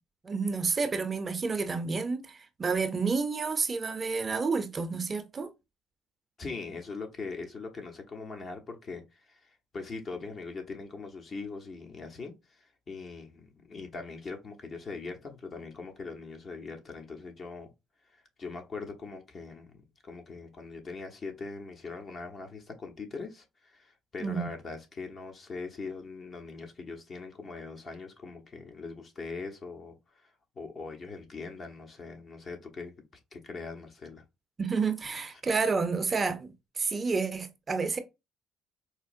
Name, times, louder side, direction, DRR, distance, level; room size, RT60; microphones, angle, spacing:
voice 1, 0.2-5.5 24.2-24.5 34.6-38.0, right 4 dB, 35° right, 0.5 m, -30 dB
voice 2, 6.4-17.7 18.0-32.9 33.3-34.2 35.3-35.4, left 4 dB, 40° left, 0.9 m, -41 dB
4.3 x 2.0 x 2.5 m
supercardioid pair, 80°, 0 cm